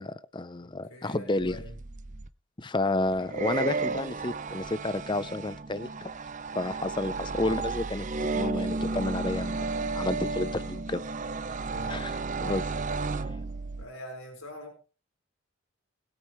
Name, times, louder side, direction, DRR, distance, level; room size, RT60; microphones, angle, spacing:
voice 1, 0.0-1.6 2.6-6.1 6.5-8.1 8.3-11.0 11.9-12.6, left 2 dB, 20° left, 15 dB, 0.6 m, -31 dB
voice 2, 0.6-1.7 3.3-3.4 11.4-12.0 13.8-14.8, left 1 dB, 85° left, 1 dB, 4.9 m, -44 dB
sound 1, 1.4-2.3 3.1-13.9, right 3 dB, 35° right, 0.6 m, -33 dB
20.5 x 9.1 x 3.2 m, 0.33 s
head